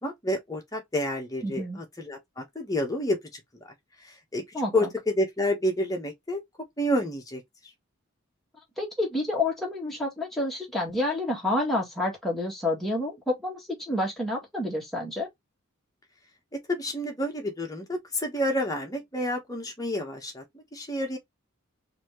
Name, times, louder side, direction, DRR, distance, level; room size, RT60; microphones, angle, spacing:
voice 1, 0.0-3.4 4.0-4.4 4.7-6.4 6.8-7.4 16.7-21.2, left 1 dB, 15° left, 1.1 m, -29 dB
voice 2, 1.4-1.8 4.5-4.7 8.8-15.3, left 1 dB, ahead, 1.6 m, -29 dB
4.2 x 2.9 x 3.0 m
head